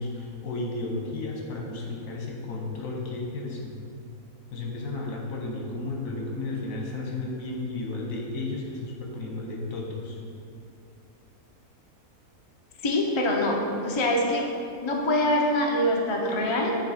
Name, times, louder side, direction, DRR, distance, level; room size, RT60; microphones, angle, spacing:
voice 1, 0.0-3.8 4.5-10.2, left 2 dB, 65° left, -1 dB, 1.3 m, -33 dB
voice 2, 12.8-14.5 14.8-16.8, left 1 dB, 45° left, -1 dB, 0.3 m, -24 dB
8.9 x 3.3 x 4.2 m, 2.5 s
omnidirectional pair, 1.6 m